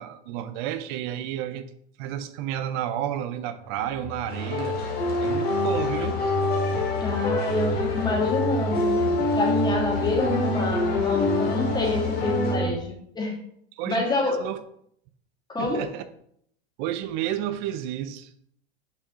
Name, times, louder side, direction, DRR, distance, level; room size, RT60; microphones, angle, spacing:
voice 1, 0.0-1.7 2.0-6.2 13.7-14.0 14.2-14.6 15.6-16.0 16.8-18.3, right 11 dB, 45° right, 12 dB, 0.6 m, -31 dB
sound 1, 3.7-12.7, left 2 dB, 60° left, 1.6 m, -26 dB
sound 2, 4.3-12.6, left 2 dB, 25° left, 2.4 m, -38 dB
voice 2, 7.0-13.4 13.9-14.5 15.5-15.9, left 3 dB, 10° left, -1 dB, 1.9 m, -27 dB
6.4 x 5.3 x 2.9 m, 0.68 s
hypercardioid pair, 95°, 33 cm